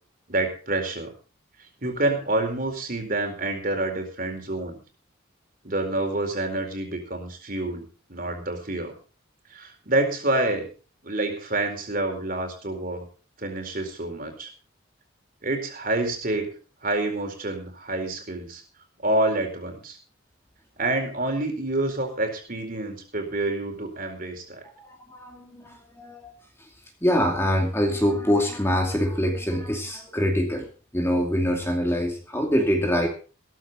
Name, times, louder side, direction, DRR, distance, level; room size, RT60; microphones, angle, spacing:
voice 1, 0.3-1.1 1.8-4.8 5.6-8.9 9.5-10.7 11.0-13.1 13.4-14.5 15.4-16.5 16.8-18.6 19.0-20.0 20.8-24.6, right 2 dB, 45° right, 4 dB, 4.3 m, -27 dB
voice 2, 24.8-26.3 27.0-30.7 30.9-33.1, equal, 10° left, 2 dB, 2.5 m, -24 dB
16.0 x 14.0 x 4.0 m, 0.37 s
head